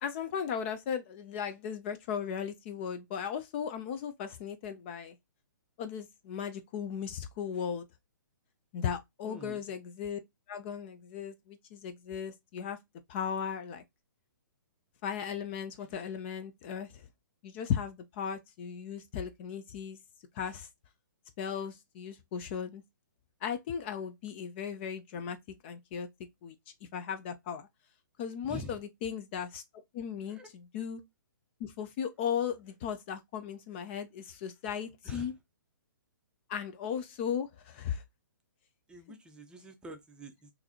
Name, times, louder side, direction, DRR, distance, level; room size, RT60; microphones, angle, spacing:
voice 1, 0.0-5.2 5.8-7.8 8.7-10.2 10.5-12.8 13.1-13.8 15.0-17.1 17.4-20.0 20.3-20.7 21.4-22.8 23.4-25.4 25.6-26.1 26.4-26.6 26.9-27.7 28.2-29.6 29.9-31.0 31.6-35.3 36.5-38.0, left 8 dB, 35° left, 0.4 m, -36 dB
voice 2, 9.2-9.6 28.5-28.8 30.3-30.5 35.0-35.3 38.9-40.5, right 1 dB, 10° right, 0.6 m, -46 dB
3.8 x 2.6 x 2.8 m
figure-of-eight pair, 130°, 11 cm